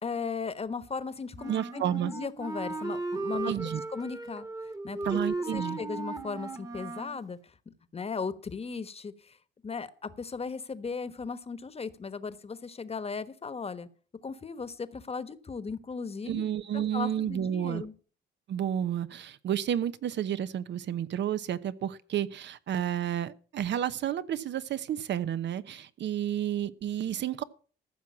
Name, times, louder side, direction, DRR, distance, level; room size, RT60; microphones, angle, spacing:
voice 1, 0.0-4.5 4.8-5.0 5.5-7.4 7.7-9.4 9.6-13.9 14.2-16.4 16.7-17.9, left 5 dB, 30° left, 1.2 m, -37 dB
Wind instrument woodwind instrument, 1.3-7.2, right 3 dB, 15° right, 1.4 m, -36 dB
voice 2, 1.5-2.1 3.4-3.8 5.0-5.8 16.3-17.8 18.5-27.4, right 10 dB, 65° right, 0.9 m, -31 dB
14.5 x 6.1 x 8.3 m
cardioid pair, 90°, 20 cm